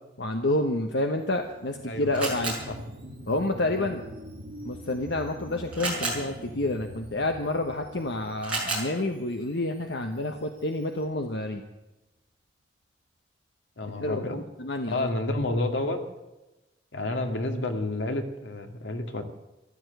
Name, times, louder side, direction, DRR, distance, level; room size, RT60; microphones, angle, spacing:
voice 1, 0.2-2.6 3.3-4.0 4.6-11.6 14.0-15.1, left 2 dB, 75° left, 4 dB, 1.2 m, -29 dB
Camera, 1.2-11.0, right 2 dB, 5° right, 7.1 m, -38 dB
sound 1, 1.3-10.3 10.7-10.8, equal, 70° right, 2.2 m, -44 dB
voice 2, 1.8-2.2 2.7-2.8 13.8-14.4 14.9-16.0 16.9-19.2, left 2 dB, 90° left, 5 dB, 2.0 m, -30 dB
14.5 x 12.5 x 8.0 m, 1.0 s
head